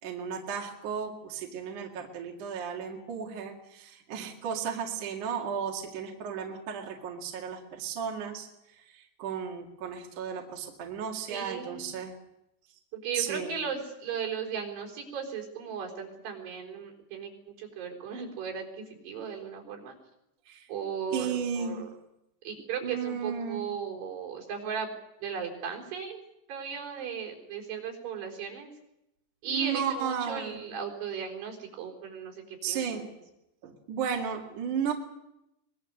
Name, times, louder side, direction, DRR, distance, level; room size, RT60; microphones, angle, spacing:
voice 1, 0.0-8.5 8.9-12.1 13.1-13.5 20.5-20.7 21.1-21.8 22.8-23.7 29.5-30.6 32.6-33.0 33.6-34.9, right 7 dB, 50° right, 0 dB, 3.2 m, -34 dB
voice 2, 11.3-11.9 12.9-20.0 20.7-21.9 22.4-24.9 25.2-26.2 26.5-28.7 29.4-33.1, right 6 dB, 70° right, 0 dB, 6.0 m, -36 dB
24.0 x 21.0 x 6.7 m, 0.87 s
omnidirectional pair, 5.0 m